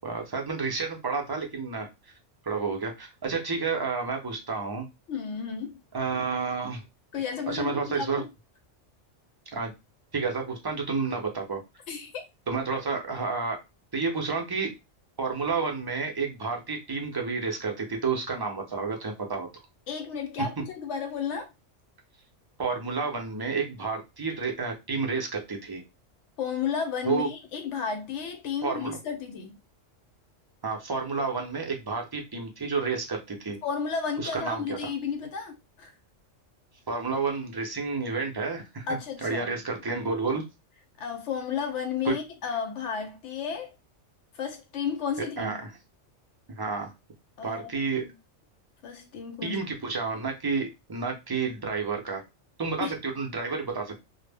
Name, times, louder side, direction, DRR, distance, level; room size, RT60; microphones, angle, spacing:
voice 1, 0.0-1.9 2.4-4.9 5.9-6.8 7.5-8.2 9.5-9.7 10.1-11.6 12.5-13.6 13.9-14.7 15.2-19.5 22.6-25.8 27.0-27.3 28.6-29.0 30.6-33.6 34.2-34.9 36.9-40.4 42.1-42.2 45.4-45.6 46.5-46.9 47.4-48.1 49.4-52.2 52.6-54.0, right 4 dB, 40° right, 0.3 m, -30 dB
voice 2, 5.1-5.8 7.1-8.3 11.9-12.2 19.9-21.5 26.4-29.6 33.6-35.9 38.9-39.5 41.0-43.7 44.3-45.6 47.4-48.1 48.8-49.6 52.8-53.0, left 6 dB, 70° left, 0.8 m, -33 dB
2.0 x 2.0 x 3.3 m
omnidirectional pair, 1.3 m